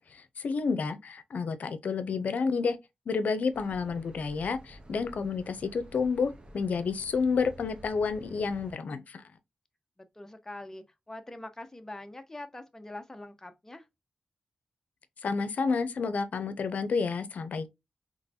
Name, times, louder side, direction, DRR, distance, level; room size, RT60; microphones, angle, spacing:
voice 1, 0.0-2.8 3.1-9.2 15.2-17.7, left 5 dB, 75° left, 0.6 m, -30 dB
sound 1, 3.5-8.7, right 1 dB, 35° right, 0.9 m, -50 dB
voice 2, 10.0-13.9, left 2 dB, 15° left, 0.8 m, -44 dB
3.8 x 3.1 x 2.6 m
wide cardioid pair, 90°, 3 cm